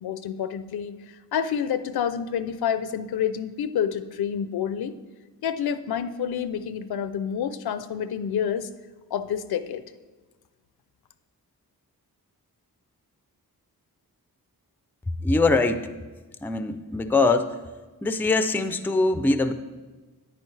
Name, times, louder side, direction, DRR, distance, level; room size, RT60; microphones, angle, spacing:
voice 1, 0.0-1.0 1.3-5.0 5.4-8.7 9.1-9.8, left 8 dB, 75° left, 13 dB, 0.5 m, -28 dB
voice 2, 15.2-15.9 16.4-17.6 18.0-19.5, left 3 dB, 5° left, 10 dB, 0.4 m, -22 dB
9.4 x 9.2 x 3.2 m, 1.3 s
cardioid pair, 80°, 38 cm